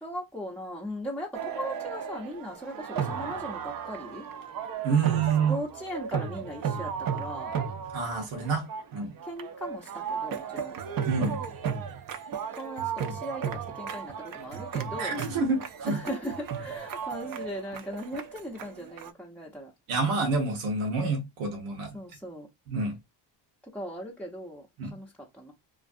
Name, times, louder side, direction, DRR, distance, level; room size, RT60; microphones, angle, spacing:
voice 1, 0.0-4.3 5.1-7.5 9.2-10.7 12.5-15.2 15.9-19.7 21.9-22.5 23.7-25.5, equal, ahead, 0.6 m, -38 dB
sound 1, 1.3-19.1, right 7 dB, 45° right, 0.5 m, -35 dB
voice 2, 4.8-5.6 7.9-9.1 11.1-11.4 15.0-16.0 19.9-22.0 22.7-22.9 24.8-24.9, right 4 dB, 90° right, 0.9 m, -28 dB
2.5 x 2.3 x 2.5 m
cardioid pair, 80°, 49 cm